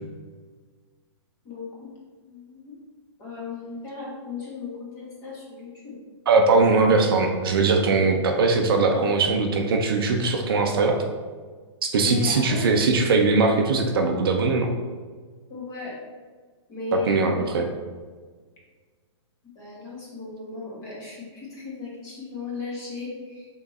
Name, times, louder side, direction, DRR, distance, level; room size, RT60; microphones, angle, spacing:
voice 1, 1.4-1.9 2.3-2.7 3.2-6.0 8.7-9.2 11.9-12.7 15.5-16.0 16.7-17.7 19.5-23.5, left 4 dB, 20° left, -5 dB, 1.4 m, -36 dB
voice 2, 6.3-11.0 11.8-14.7 16.9-17.7, right 3 dB, 50° right, 3 dB, 0.7 m, -21 dB
5.9 x 4.0 x 4.2 m, 1.5 s
hypercardioid pair, 175°, 15 cm